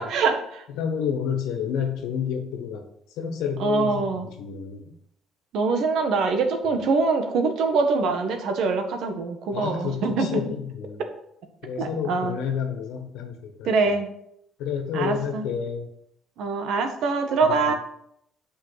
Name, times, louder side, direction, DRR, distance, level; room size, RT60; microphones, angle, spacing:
voice 1, 0.0-0.6 3.6-4.3 5.5-10.4 11.8-12.4 13.6-14.1 14.9-15.5 16.4-17.7, right 4 dB, 70° right, 5 dB, 1.5 m, -24 dB
voice 2, 0.8-2.8 3.2-4.1 4.4-4.8 9.5-11.0 11.6-13.7 14.6-15.9 17.4-17.7, left 7 dB, 85° left, 5 dB, 1.5 m, -29 dB
9.0 x 5.6 x 5.1 m, 0.73 s
cardioid pair, 115°, 0 cm